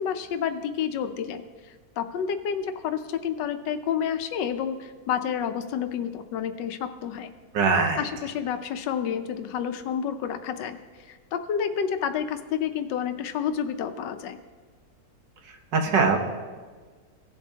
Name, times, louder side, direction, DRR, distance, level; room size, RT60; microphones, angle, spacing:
voice 1, 0.0-1.4 2.0-7.3 8.0-10.8 11.1-14.4, left 8 dB, 80° left, 9 dB, 1.3 m, -29 dB
voice 2, 7.5-8.0 15.7-16.3, right 4 dB, 75° right, 3 dB, 1.7 m, -22 dB
17.0 x 7.3 x 2.8 m, 1.5 s
omnidirectional pair, 1.9 m